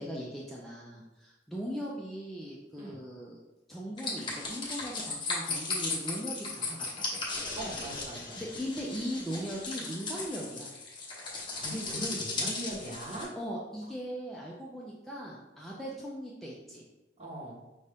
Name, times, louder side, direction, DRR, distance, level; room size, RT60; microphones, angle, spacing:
voice 1, 0.0-3.4 3.7-7.2 8.4-10.7 13.4-16.8, equal, ahead, -5 dB, 0.5 m, -39 dB
sound 1, 4.0-13.2, left 3 dB, 25° left, 1.0 m, -36 dB
voice 2, 7.5-8.4 11.6-13.3 17.2-17.6, right 1 dB, 35° right, -6 dB, 1.3 m, -39 dB
5.4 x 2.6 x 3.4 m, 1.0 s
head